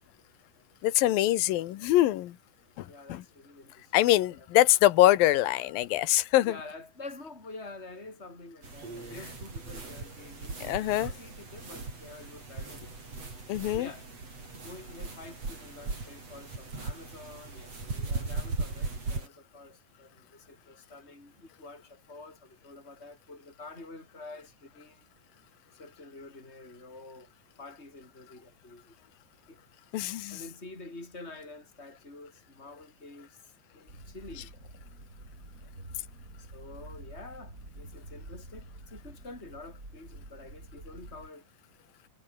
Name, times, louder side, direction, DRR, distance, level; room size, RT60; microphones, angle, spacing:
voice 1, 0.8-2.3 2.8-3.2 3.9-6.5 10.6-11.1 13.5-13.9 29.9-30.4, left 15 dB, 80° left, 3.0 m, -24 dB
voice 2, 2.8-4.5 6.4-13.0 13.7-14.1 14.6-25.0 25.7-27.3 27.6-28.9 29.5-29.6 29.9-34.5 36.4-41.5, left 2 dB, 15° left, 6.8 m, -48 dB
sound 1, 8.6-19.3, right 3 dB, 45° right, 7.5 m, -38 dB
sound 2, 33.9-41.3, right 2 dB, 25° right, 8.1 m, -48 dB
omnidirectional pair, 4.1 m